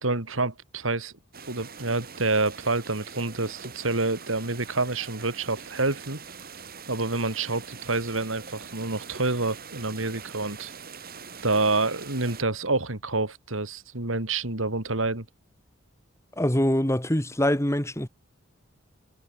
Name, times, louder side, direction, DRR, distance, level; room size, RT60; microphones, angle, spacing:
voice 1, 0.0-1.1 1.5-6.2 6.9-10.7 11.4-15.2, right 3 dB, 90° right, 3.4 m, -28 dB
sound 1, 1.3-12.4, right 6 dB, 50° right, 7.0 m, -43 dB
voice 2, 16.4-18.1, left 1 dB, 15° left, 2.5 m, -24 dB
head